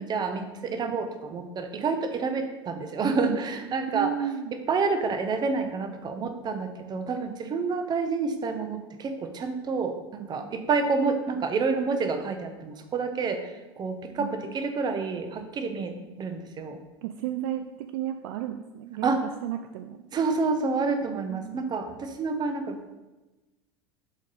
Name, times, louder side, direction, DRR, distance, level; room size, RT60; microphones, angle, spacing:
voice 1, 0.0-4.3 4.7-16.8 19.0-19.2 20.1-22.8, right 4 dB, 30° right, 7 dB, 0.8 m, -28 dB
voice 2, 3.9-4.5 14.2-14.5 17.0-19.2 19.4-20.0 21.3-21.6, right 11 dB, 60° right, 7 dB, 0.4 m, -33 dB
7.1 x 3.7 x 4.0 m, 1.1 s
hypercardioid pair, 80°, 14 cm